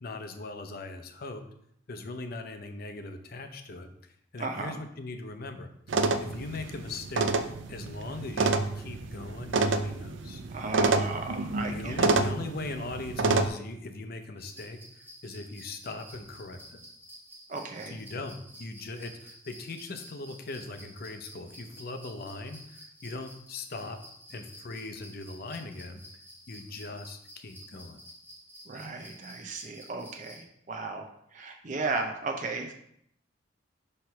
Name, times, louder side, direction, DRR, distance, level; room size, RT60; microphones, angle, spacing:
voice 1, 0.0-1.4 1.9-3.9 4.3-5.7 6.2-7.3 7.7-10.4 11.7-16.8 17.9-24.0 24.3-26.0 26.5-28.0, left 2 dB, 55° left, 7 dB, 0.7 m, -40 dB
voice 2, 4.4-4.8 10.5-11.9 17.5-18.0 28.7-32.7, right 3 dB, 40° right, 3 dB, 0.7 m, -35 dB
sound 1, 5.9-13.5, right 3 dB, 85° right, 0.5 m, -28 dB
sound 2, 14.4-30.4, equal, 10° right, 1.3 m, -51 dB
6.1 x 3.2 x 5.7 m, 0.71 s
head